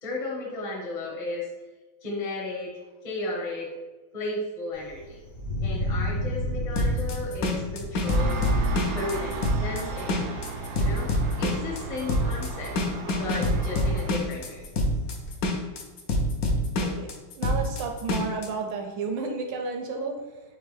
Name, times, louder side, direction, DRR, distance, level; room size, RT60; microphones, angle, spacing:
voice 1, 0.0-1.5 2.0-2.7 3.0-3.7 4.1-5.2 5.6-8.4 8.9-10.4 10.7-11.1 11.4-12.7 13.2-14.6, left 2 dB, 30° left, -4 dB, 0.7 m, -34 dB
Thunder, 4.7-15.4, equal, 55° left, 1.1 m, -35 dB
sound 1, 6.8-18.5, left 1 dB, 80° left, 0.7 m, -26 dB
Engine, 8.0-14.1, right 2 dB, 90° right, 1.5 m, -34 dB
voice 2, 17.4-20.1, right 4 dB, 75° right, 3 dB, 1.2 m, -31 dB
4.5 x 3.0 x 3.4 m, 1.2 s
omnidirectional pair, 2.2 m